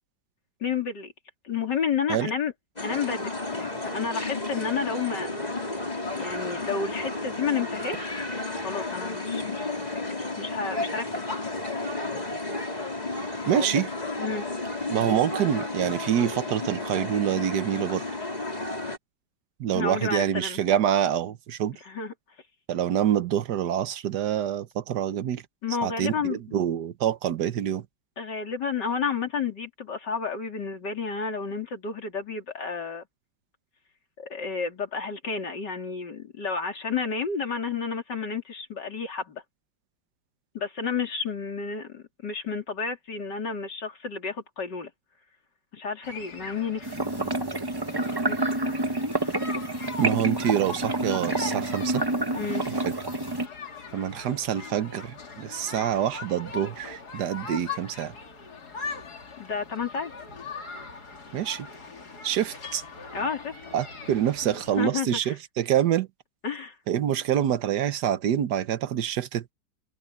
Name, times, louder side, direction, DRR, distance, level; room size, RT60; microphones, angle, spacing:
voice 1, 0.6-1.1 1.4-2.5 2.8-5.3 6.2-8.2 8.6-11.2 13.5-13.7 14.2-14.5 19.7-20.6 21.8-22.1 25.6-26.6 28.2-33.0 34.2-39.4 40.5-44.9 45.7-47.3 48.3-48.9 49.2-49.4 49.7-49.8 52.3-52.7 59.4-60.1 63.1-63.5 64.4-65.4 66.4-66.8, left 5 dB, 85° left, 3.7 m, -31 dB
sound 1, 2.8-19.0, left 2 dB, 25° left, 3.7 m, -32 dB
voice 2, 13.5-13.9 14.9-18.0 19.6-21.8 22.7-25.4 25.8-27.8 50.0-52.1 52.9-53.0 53.9-58.1 61.3-61.7 62.2-62.8 63.7-66.1 66.9-69.5, right 10 dB, 75° right, 1.5 m, -26 dB
sound 2, 46.0-64.8, left 4 dB, 65° left, 3.2 m, -41 dB
sound 3, 46.8-53.5, right 2 dB, 15° right, 1.0 m, -28 dB
open air
omnidirectional pair, 1.8 m